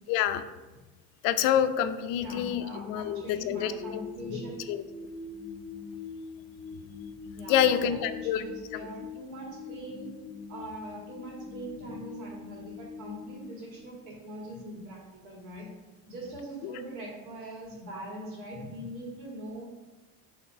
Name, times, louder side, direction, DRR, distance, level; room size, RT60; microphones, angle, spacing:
voice 1, 0.1-0.4 1.2-4.0 4.7-4.8 7.5-8.4 8.7-8.9 16.6-16.7, left 10 dB, 60° left, 10 dB, 0.5 m, -27 dB
sound 1, 2.1-14.3, left 5 dB, 20° left, 0.6 m, -43 dB
voice 2, 2.1-4.6 6.6-6.7 7.3-10.1 10.5-15.7 16.1-19.7, right 1 dB, 50° right, -2 dB, 2.1 m, -42 dB
5.7 x 3.2 x 5.7 m, 1.2 s
cardioid pair, 150°, 38 cm